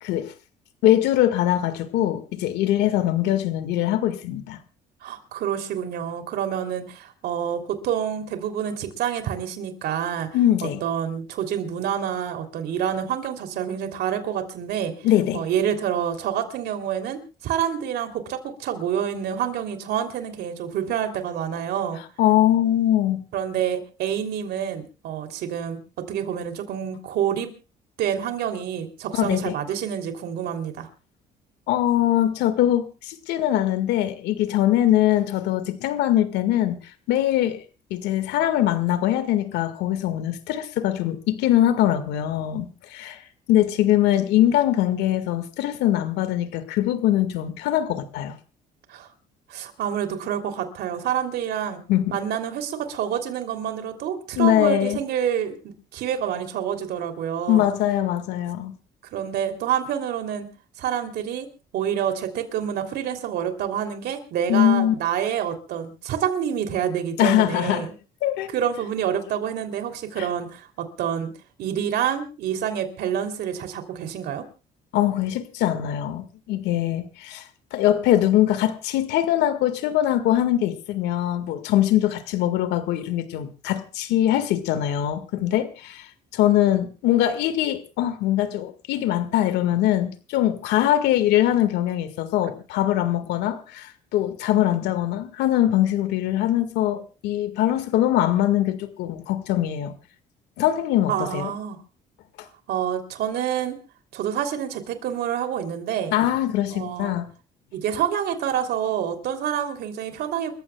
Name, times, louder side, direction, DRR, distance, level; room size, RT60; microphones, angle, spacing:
voice 1, 0.0-0.3 0.8-4.6 10.3-10.8 15.0-15.5 22.2-23.3 29.1-29.6 31.7-36.8 37.1-37.6 37.9-43.2 43.5-48.4 51.9-52.2 54.4-55.0 57.5-58.8 64.5-65.0 67.2-67.9 68.2-68.5 70.2-70.3 74.9-77.4 77.7-86.1 86.3-99.9 100.6-101.5 102.4-102.5 106.1-107.3, left 12 dB, 85° left, 1.9 m, -22 dB
voice 2, 5.0-10.3 10.8-14.9 15.3-22.0 23.3-27.5 28.0-30.9 48.9-49.1 49.5-51.8 52.1-57.7 59.1-60.5 60.8-61.5 61.7-67.9 68.5-71.3 71.6-74.4 101.1-101.8 102.7-103.8 104.1-106.2 106.7-107.1 107.7-110.5, right 9 dB, 75° right, 3.2 m, -27 dB
29.0 x 15.0 x 2.3 m
cardioid pair, 110°, 17 cm